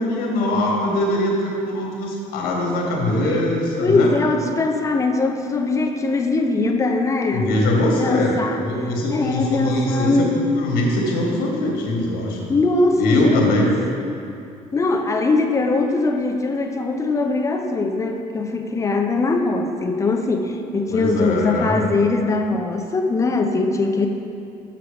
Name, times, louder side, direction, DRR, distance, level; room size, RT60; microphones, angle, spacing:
voice 1, 0.0-4.1 7.3-12.6 13.0-13.7 20.9-21.8, left 1 dB, 85° left, -1 dB, 1.4 m, -22 dB
voice 2, 3.8-7.6 8.0-8.6 9.1-10.3 12.5-13.8 14.7-24.1, left 3 dB, 20° left, 4 dB, 0.6 m, -21 dB
6.2 x 5.8 x 5.1 m, 2.5 s
cardioid pair, 130°, 15 cm